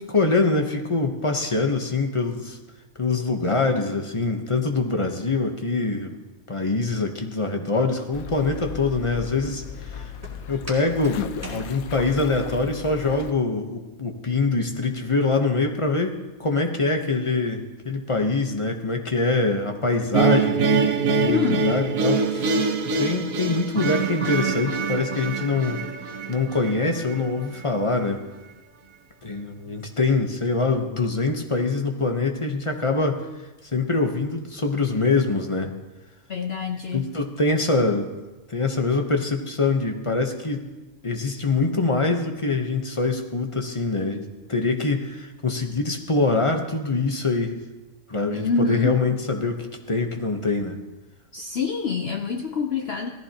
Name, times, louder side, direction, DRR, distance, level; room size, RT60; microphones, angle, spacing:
voice 1, 0.1-2.6 3.0-6.1 6.5-9.6 9.9-10.1 10.5-11.2 11.5-20.6 21.1-22.5 23.0-25.8 26.3-28.2 29.2-33.2 33.7-35.7 36.9-38.1 38.5-40.7 41.0-44.2 44.5-47.6 48.1-49.6 49.9-50.8, left 3 dB, 25° left, 4 dB, 0.9 m, -24 dB
Walk footsteps, 7.8-12.4, right 1 dB, 10° right, 2.9 m, -43 dB
sound 1, 8.1-13.3, left 8 dB, 85° left, 1.1 m, -36 dB
sound 2, 20.1-27.2, right 4 dB, 75° right, 1.4 m, -24 dB
voice 2, 21.3-21.7 36.3-37.1 48.3-49.0 51.3-53.1, left 5 dB, 55° left, 4 dB, 0.8 m, -26 dB
17.0 x 14.0 x 2.9 m, 1.1 s
omnidirectional pair, 1.5 m